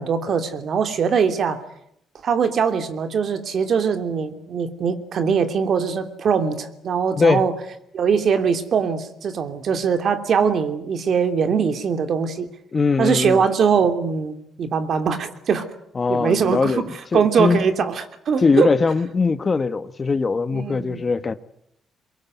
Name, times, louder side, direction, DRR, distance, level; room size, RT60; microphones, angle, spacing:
voice 1, 0.0-1.6 2.2-7.5 7.9-12.5 13.0-15.7 16.1-16.9 17.1-18.7 20.5-21.0, right 6 dB, 60° right, 3.0 m, -21 dB
voice 2, 7.2-7.5 12.7-13.4 15.9-16.8 17.1-17.6 18.4-21.4, left 4 dB, 35° left, 1.4 m, -20 dB
23.0 x 23.0 x 9.4 m
cardioid pair, 90°, 0 cm